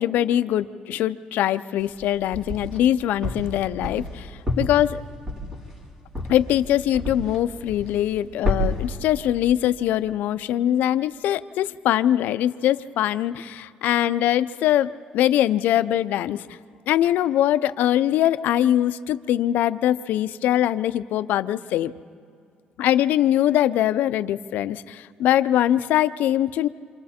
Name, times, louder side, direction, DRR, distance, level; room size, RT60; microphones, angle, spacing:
voice 1, 0.0-4.0 4.6-5.0 6.3-16.4 16.9-21.9 22.8-24.8 25.2-26.7, left 12 dB, 75° left, 13 dB, 0.6 m, -22 dB
sound 1, 1.8-2.8 3.2-7.4 7.7-8.2 8.4-8.9, left 1 dB, 20° right, 3.8 m, -29 dB
28.5 x 26.5 x 4.3 m, 2.3 s
cardioid pair, 160°, 3 cm